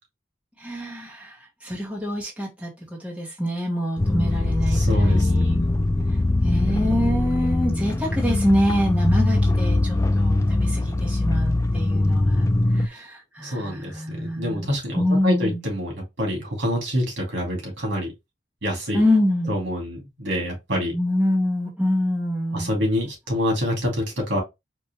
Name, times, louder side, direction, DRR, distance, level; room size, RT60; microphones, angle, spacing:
voice 1, 0.6-5.6 6.4-15.6 18.9-19.5 20.8-22.7, equal, 5° right, 1.1 m, -26 dB
sound 1, 4.0-12.9, left 2 dB, 15° left, 0.3 m, -21 dB
voice 2, 4.7-5.7 13.4-15.9 16.2-18.1 18.6-19.0 19.5-20.9 22.5-24.4, equal, 90° right, 2.1 m, -26 dB
4.6 x 2.6 x 3.0 m
head